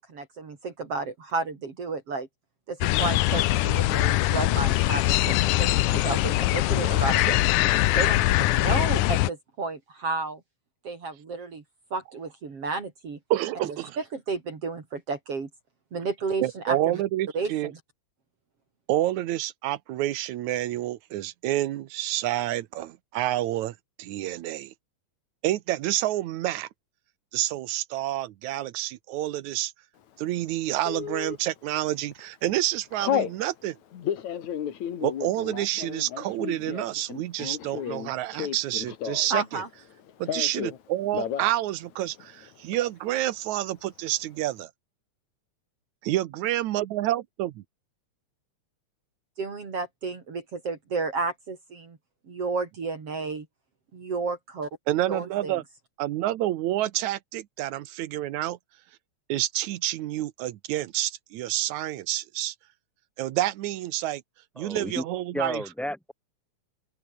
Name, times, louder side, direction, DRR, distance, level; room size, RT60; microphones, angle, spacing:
voice 1, 0.1-2.3 2.7-7.5 7.9-10.4 10.8-11.6 11.9-13.2 14.0-15.5 15.9-17.0 17.3-17.5 39.3-39.7 49.4-52.0 52.3-53.5 53.9-54.7 55.1-55.5, right 4 dB, 50° right, 4.3 m, -32 dB
sound 1, 2.8-9.3, left 17 dB, 85° left, 2.3 m, -22 dB
voice 2, 13.3-14.0 16.4-17.7 18.9-24.7 25.4-26.7 27.3-29.7 30.2-33.8 35.0-39.6 40.2-44.7 46.0-47.6 54.9-55.6 56.0-58.6 59.3-62.6 63.2-64.2 64.6-65.6, right 14 dB, 75° right, 2.2 m, -28 dB
Telephone, 30.9-31.4 31.9-32.2 32.5-33.4 33.9-39.4 39.7-40.8 41.1-41.5 41.8-41.9 42.2-42.8, left 9 dB, 70° left, 3.2 m, -32 dB
voice 3, 64.6-65.0 65.3-66.1, left 1 dB, ahead, 1.9 m, -32 dB
omnidirectional pair, 3.4 m